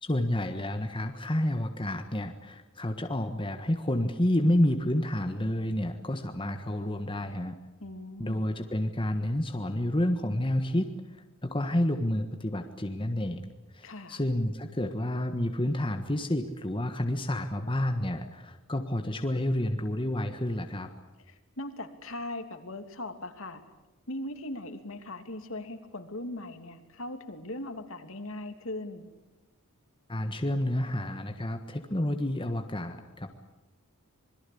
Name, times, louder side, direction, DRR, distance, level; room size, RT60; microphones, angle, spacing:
voice 1, 0.0-7.5 8.2-10.9 11.4-20.9 30.1-33.4, left 1 dB, 20° left, 6 dB, 1.5 m, -29 dB
voice 2, 7.8-8.4 13.8-14.2 21.3-23.6 24.1-29.1, left 1 dB, 60° left, 7 dB, 2.8 m, -39 dB
26.5 x 22.0 x 8.7 m, 1.1 s
head